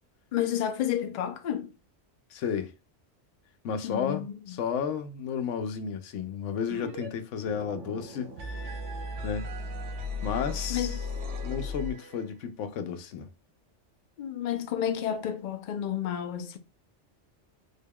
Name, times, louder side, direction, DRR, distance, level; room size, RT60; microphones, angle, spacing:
voice 1, 0.3-1.7 3.8-4.6 10.7-11.0 14.2-16.6, left 10 dB, 60° left, 0.5 m, -31 dB
voice 2, 2.3-2.7 3.6-8.7 9.2-9.5 10.2-11.0 11.4-13.3, left 7 dB, 85° left, 0.9 m, -32 dB
sound 1, 6.7-7.1 7.3-12.3, left 2 dB, 80° right, 1.1 m, -36 dB
3.6 x 2.2 x 3.5 m
omnidirectional pair, 1.2 m